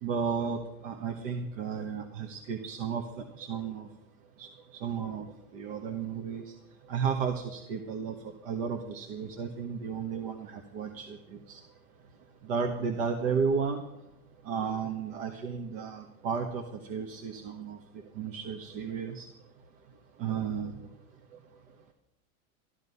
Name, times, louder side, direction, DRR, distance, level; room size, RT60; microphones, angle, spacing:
voice 1, 0.0-3.9 4.4-5.3 5.5-6.5 6.9-11.6 12.4-13.8 14.4-17.8 18.2-19.3 20.2-20.9, right 6 dB, 60° right, 5 dB, 1.5 m, -33 dB
13.0 x 12.5 x 5.6 m, 0.88 s
hypercardioid pair, 100°, 43 cm